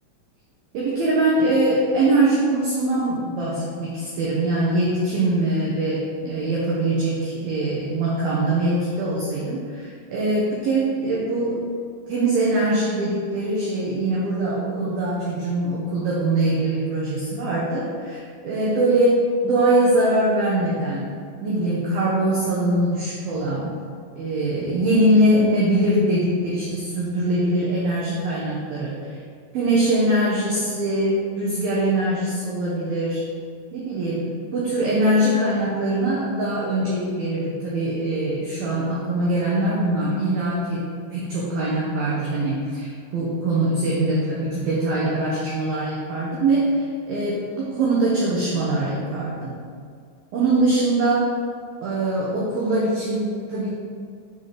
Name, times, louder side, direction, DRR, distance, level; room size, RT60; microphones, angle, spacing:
voice 1, 0.7-11.6 12.1-21.1 21.4-23.7 24.2-29.2 29.5-33.2 33.7-40.8 41.1-49.6 50.3-51.3 51.8-53.7, right 1 dB, 85° right, -6 dB, 2.0 m, -22 dB
7.3 x 4.1 x 5.0 m, 2.2 s
omnidirectional pair, 5.6 m